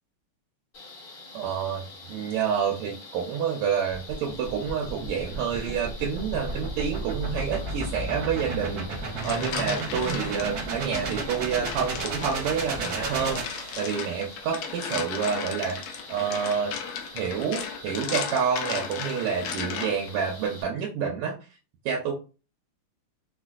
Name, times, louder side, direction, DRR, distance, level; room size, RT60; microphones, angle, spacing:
sound 1, 0.7-20.6, left 2 dB, 45° left, 1.5 m, -46 dB
voice 1, 1.3-15.8 16.1-16.7 17.1-21.4 21.8-22.1, right 7 dB, 90° right, 0 dB, 1.6 m, -28 dB
sound 2, 3.9-14.2, right 2 dB, 65° right, 1.0 m, -33 dB
sound 3, 8.9-10.5 10.9-20.1, left 6 dB, 80° left, 1.5 m, -35 dB
4.2 x 2.2 x 2.3 m, 0.34 s
omnidirectional pair, 2.4 m